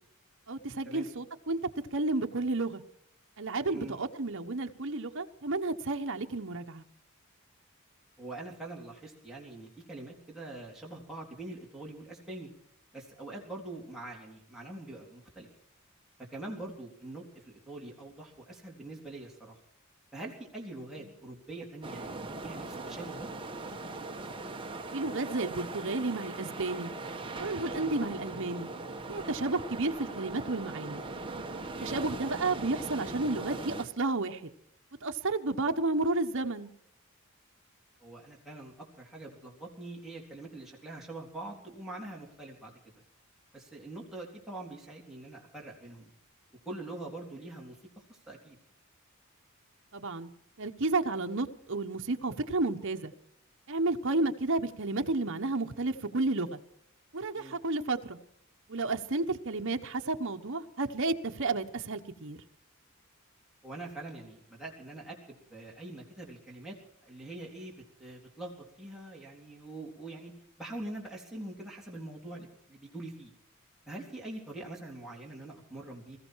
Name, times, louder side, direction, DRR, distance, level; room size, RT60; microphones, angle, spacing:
voice 1, 0.5-2.8 3.4-6.8 24.9-26.9 27.4-28.7 29.1-31.0 31.8-34.5 35.0-36.7 49.9-50.3 50.6-53.1 53.7-56.6 57.1-58.2 58.7-62.4, right 2 dB, 60° right, 5 dB, 1.1 m, -32 dB
voice 2, 8.2-12.5 12.9-15.5 16.3-19.6 20.1-23.3 31.6-32.0 38.0-42.8 43.5-46.1 46.7-47.8 48.1-48.6 57.3-57.6 63.6-66.8 67.0-70.3 70.6-73.3 73.9-76.2, right 2 dB, ahead, -3 dB, 3.7 m, -44 dB
sound 1, 21.8-33.8, right 2 dB, 25° right, 1.4 m, -40 dB
21.0 x 14.5 x 4.7 m, 0.74 s
head